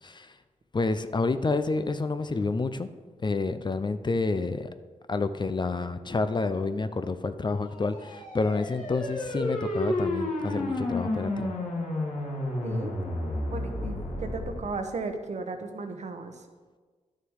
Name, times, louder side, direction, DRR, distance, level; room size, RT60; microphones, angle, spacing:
voice 1, 0.0-0.4 0.7-2.9 3.2-4.7 5.1-11.5, left 3 dB, 35° left, 11 dB, 0.5 m, -29 dB
sound 1, 7.8-14.7, left 1 dB, 75° left, 2.4 m, -31 dB
voice 2, 12.6-12.9 13.5-16.5, right 3 dB, 60° right, 6 dB, 1.0 m, -35 dB
11.0 x 6.6 x 4.8 m, 1.4 s
cardioid pair, 70°, 13 cm